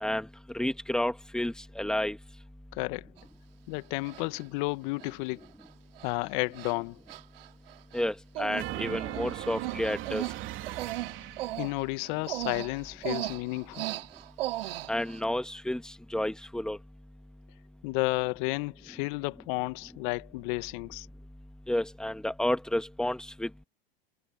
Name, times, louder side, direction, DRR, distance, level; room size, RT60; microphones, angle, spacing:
voice 1, 0.5-2.2 7.9-10.2 14.9-16.8 21.7-23.6, left 1 dB, ahead, 1.6 m, -31 dB
voice 2, 2.7-3.1 3.7-5.4 6.0-7.0 11.6-13.9 17.8-21.1, left 25 dB, 55° left, 1.4 m, -32 dB
Human voice, 3.2-3.3 4.1-4.4 5.0-5.1 5.4-5.7 6.0-6.1 6.5-6.8 7.1-8.1 8.4-8.7 8.9-15.2, right 16 dB, 70° right, 3.2 m, -37 dB
sound 1, 8.5-11.7, right 15 dB, 40° right, 3.2 m, -38 dB
hypercardioid pair, 110°, 30 cm